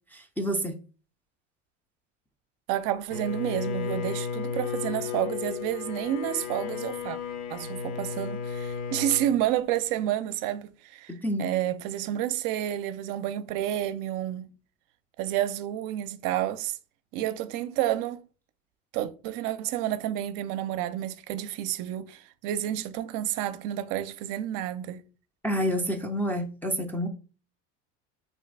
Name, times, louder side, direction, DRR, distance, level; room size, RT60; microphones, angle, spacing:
voice 1, 0.1-0.8 11.1-11.5 25.4-27.1, equal, 5° left, 0.3 m, -28 dB
voice 2, 2.7-7.2 7.5-11.1 11.4-14.5 15.2-16.8 17.1-18.2 18.9-25.0, right 12 dB, 60° right, 0.5 m, -30 dB
Bowed string instrument, 3.1-9.4, left 6 dB, 60° left, 0.9 m, -34 dB
3.1 x 2.5 x 3.5 m
supercardioid pair, 90°, 37 cm